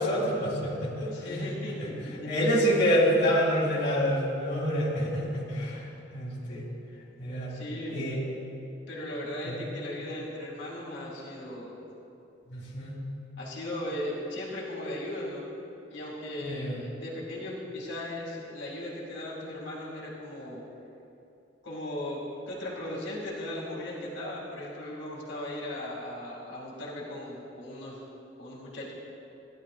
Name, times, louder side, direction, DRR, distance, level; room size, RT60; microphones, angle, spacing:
voice 1, 0.0-1.9 2.3-5.8 6.1-6.6 7.2-7.6 7.9-8.2 9.5-9.6 12.5-13.0 16.4-16.8, equal, 65° left, -6 dB, 2.3 m, -27 dB
voice 2, 1.1-1.9 2.2-2.3 7.5-8.0 8.9-11.7 13.4-15.5 15.9-20.6 21.6-28.0 28.4-28.9, left 1 dB, 85° left, -5 dB, 2.3 m, -37 dB
16.5 x 11.0 x 2.5 m, 2.8 s
head